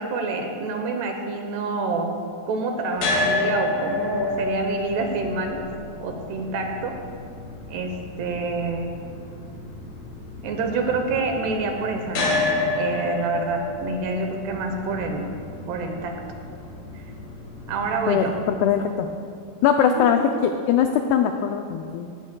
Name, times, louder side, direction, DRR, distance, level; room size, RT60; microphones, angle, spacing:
voice 1, 0.0-2.2 2.5-5.7 6.0-7.0 7.7-9.0 10.4-12.5 12.7-15.3 15.7-16.2 16.9-17.0 17.7-18.3 19.8-20.1, right 3 dB, 75° right, 4 dB, 2.8 m, -27 dB
sound 1, 3.0-19.1, left 2 dB, 55° left, 3.8 m, -30 dB
voice 2, 18.1-19.1 19.6-22.1, left 8 dB, 85° left, 5 dB, 2.3 m, -21 dB
18.5 x 16.5 x 2.3 m, 2.3 s
omnidirectional pair, 5.3 m